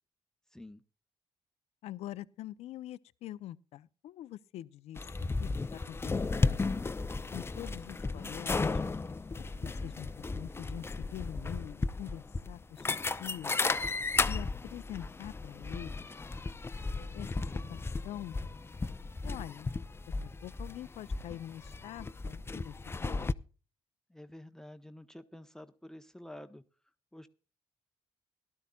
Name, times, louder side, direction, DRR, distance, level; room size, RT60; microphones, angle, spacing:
voice 1, 0.5-0.8 24.1-26.6 27.1-27.3, left 1 dB, 5° left, 0.9 m, -49 dB
voice 2, 1.8-5.1 5.4-6.7 7.3-8.8 9.3-12.9 13.2-13.6 14.2-16.2 17.0-18.4 19.2-19.7 20.4-23.3, left 13 dB, 80° left, 0.6 m, -45 dB
sound 1, 5.0-23.3, left 3 dB, 25° left, 0.6 m, -35 dB
18.0 x 12.5 x 2.3 m
cardioid pair, 70°, 11 cm